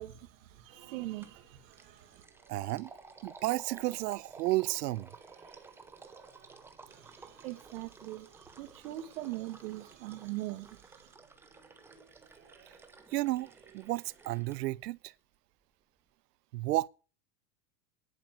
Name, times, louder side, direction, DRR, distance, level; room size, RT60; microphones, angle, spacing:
voice 1, 0.0-2.2 6.9-11.1, right 16 dB, 55° right, 2.0 m, -42 dB
sound 1, 0.7-14.8, right 7 dB, 25° right, 3.0 m, -63 dB
sound 2, 1.2-1.4 1.7-14.6, right 4 dB, 5° right, 0.7 m, -54 dB
voice 2, 2.5-2.9 3.2-5.1 13.1-15.1 16.5-16.9, right 18 dB, 85° right, 0.7 m, -32 dB
11.0 x 9.0 x 8.0 m
supercardioid pair, 165°, 46 cm